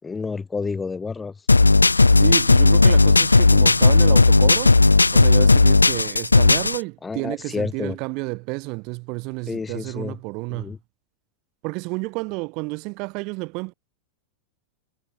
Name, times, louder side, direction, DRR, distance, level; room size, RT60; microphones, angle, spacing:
voice 1, 0.0-1.3 7.0-8.0 9.5-10.2 10.5-10.8, left 4 dB, 15° left, 0.6 m, -29 dB
sound 1, 1.5-6.8, left 3 dB, 80° left, 0.5 m, -14 dB
voice 2, 2.1-4.8 5.1-10.7 11.6-13.7, right 29 dB, 45° right, 1.9 m, -30 dB
figure-of-eight pair, 90°, 0 cm